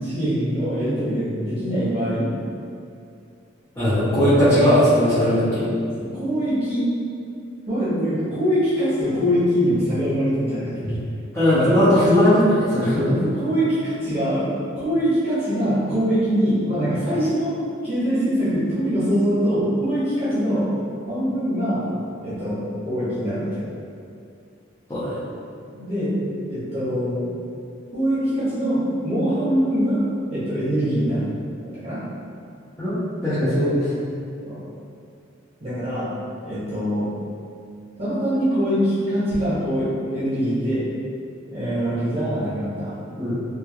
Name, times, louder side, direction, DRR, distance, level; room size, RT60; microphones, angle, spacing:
voice 1, 0.0-2.3 4.1-4.8 5.5-5.6 6.0-6.9 7.7-11.0 13.0-14.5 14.8-17.5 17.8-20.7 21.1-21.9 22.2-23.7 25.7-26.1 26.5-27.2 27.9-30.0 30.3-31.3 31.6-32.0 34.4-34.6 35.6-36.1 36.4-37.1 38.0-40.8 41.5-43.0, equal, 30° right, -12 dB, 0.8 m, -23 dB
voice 2, 3.8-5.6 10.8-11.0 11.3-13.1 24.9-25.2 32.8-33.9 43.2-43.4, equal, 15° left, -14 dB, 0.5 m, -18 dB
3.1 x 2.1 x 2.2 m, 2.4 s
head